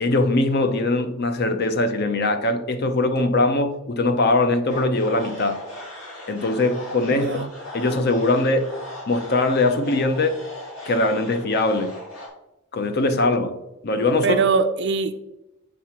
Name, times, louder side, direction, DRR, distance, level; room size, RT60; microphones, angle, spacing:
voice 1, 0.0-5.6 6.3-7.5 7.7-8.7 9.1-10.4 10.8-11.9 12.7-13.6 13.8-14.4, left 2 dB, 50° left, 0.7 m, -21 dB
sound 1, 4.7-12.3, left 1 dB, 65° left, 3.0 m, -38 dB
voice 2, 7.1-7.5 14.2-15.1, right 5 dB, 55° right, 0.5 m, -22 dB
7.6 x 3.7 x 5.8 m
head